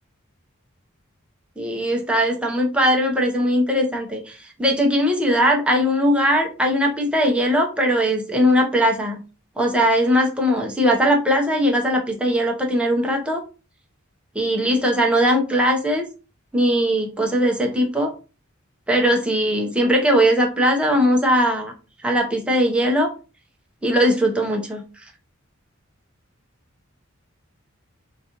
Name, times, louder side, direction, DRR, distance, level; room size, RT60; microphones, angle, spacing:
voice 1, 1.6-9.2 9.6-13.4 14.3-16.0 16.5-18.1 18.9-21.7 22.0-23.1 23.8-24.8, equal, 5° right, 0 dB, 0.7 m, -20 dB
3.9 x 2.5 x 2.9 m, 0.33 s
head